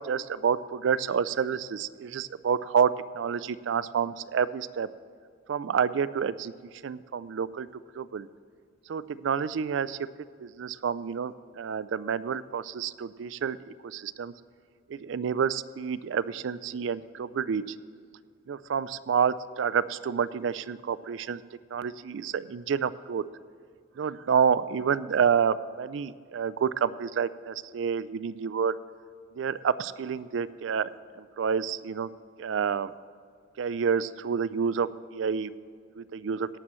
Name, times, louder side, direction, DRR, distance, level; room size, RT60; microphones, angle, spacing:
voice 1, 0.0-4.9 5.5-6.5 6.8-7.7 8.0-8.3 8.9-10.0 10.4-14.3 14.9-17.6 18.5-21.4 21.7-23.2 24.0-28.7 29.4-30.9 31.4-32.1 32.4-32.9 33.6-35.5 36.0-36.5, right 7 dB, 65° right, 17 dB, 0.4 m, -28 dB
17.0 x 12.5 x 3.1 m, 2.2 s
head